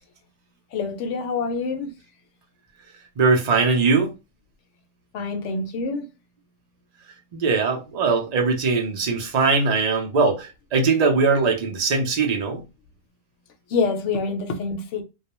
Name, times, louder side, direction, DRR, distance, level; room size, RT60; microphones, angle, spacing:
voice 1, 0.7-1.9 5.1-6.1 13.7-15.0, left 4 dB, 70° left, 0.9 m, -26 dB
voice 2, 3.2-4.1 7.3-12.6, right 4 dB, 45° right, 0.6 m, -21 dB
2.3 x 2.1 x 2.9 m
omnidirectional pair, 1.3 m